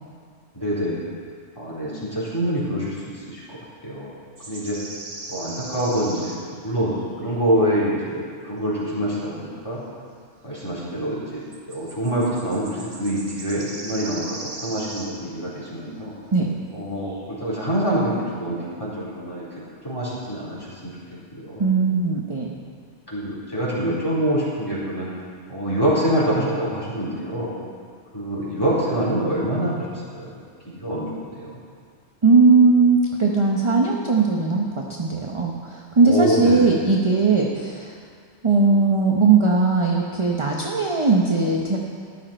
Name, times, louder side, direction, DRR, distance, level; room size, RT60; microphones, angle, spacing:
voice 1, 0.5-1.1 1.6-3.6 3.8-4.1 4.5-4.8 5.3-9.8 10.4-16.1 16.7-19.5 19.8-20.9 21.3-21.7 23.1-25.1 25.5-27.6 28.1-29.9 30.1-30.3 30.7-31.6 36.0-36.8, right 1 dB, 20° left, -9 dB, 3.9 m, -25 dB
sound 1, 4.4-6.6 6.9-7.1 11.5-15.3 17.0-17.3 17.6-18.1, right 2 dB, 45° right, 1.3 m, -38 dB
voice 2, 21.6-22.5 32.2-34.6 35.0-37.9 38.4-41.8, right 4 dB, 30° right, -1 dB, 0.9 m, -18 dB
14.0 x 11.5 x 4.4 m, 2.1 s
omnidirectional pair, 1.2 m